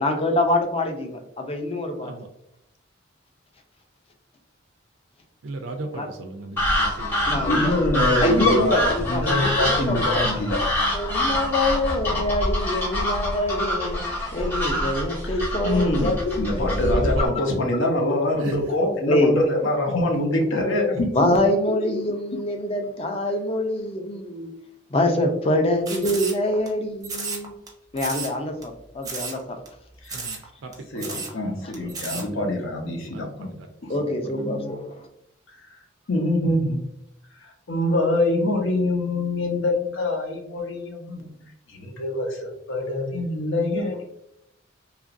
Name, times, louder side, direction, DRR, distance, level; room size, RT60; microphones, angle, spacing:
voice 1, 0.0-2.1 5.9-6.1 7.3-7.7 8.2-10.2 10.9-14.0 14.3-17.5 19.1-19.3 21.1-24.5 24.9-27.5 27.9-29.6 33.9-35.1, left 1 dB, 30° left, 5 dB, 0.4 m, -25 dB
voice 2, 5.4-7.5 16.6-17.4 18.4-18.6 30.1-31.2 31.5-31.6 32.1-32.3 33.1-33.5, right 2 dB, 75° right, 3 dB, 0.4 m, -35 dB
sound 1, 6.6-17.3, left 1 dB, 10° left, 0.8 m, -25 dB
voice 3, 7.3-10.6 15.2-21.1 30.0-30.2 30.9-33.6 33.8-34.7 36.1-36.8 37.7-41.3 41.7-44.0, left 1 dB, 75° left, 1 dB, 0.7 m, -25 dB
sound 2, 25.9-26.7 27.0-27.7 28.0-28.4 28.6-28.7 29.0-29.4 29.7-29.8 30.1-30.4 30.7-30.8 31.0-31.3 31.7-32.2, right 4 dB, 20° right, 0.5 m, -32 dB
2.9 x 2.5 x 2.5 m, 0.78 s
head